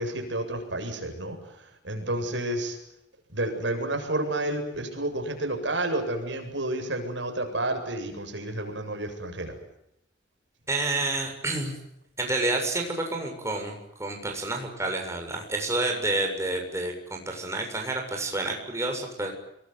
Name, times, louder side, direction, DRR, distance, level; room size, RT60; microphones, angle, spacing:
voice 1, 0.0-2.8 3.3-9.5, right 1 dB, 75° right, 4 dB, 7.8 m, -30 dB
voice 2, 10.7-11.7 12.2-19.3, right 2 dB, 15° right, 2 dB, 7.1 m, -29 dB
28.0 x 22.0 x 9.4 m, 0.82 s
head